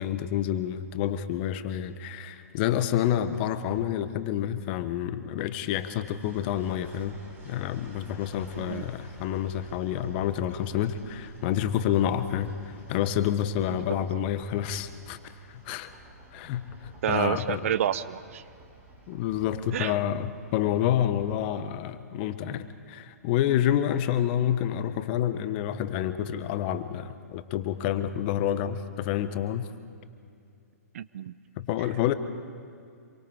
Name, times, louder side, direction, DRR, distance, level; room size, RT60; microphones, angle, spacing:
voice 1, 0.0-7.2 7.5-15.2 15.5-15.9 16.3-17.6 19.1-29.7 31.6-32.1, left 10 dB, 40° left, 12 dB, 1.2 m, -28 dB
sound 1, 6.0-21.7, right 2 dB, 20° right, 4.8 m, -50 dB
voice 2, 17.0-18.4 19.7-19.9 30.9-31.4, right 10 dB, 55° right, 15 dB, 0.7 m, -29 dB
27.0 x 23.0 x 4.9 m, 2.5 s
figure-of-eight pair, 125°, 9 cm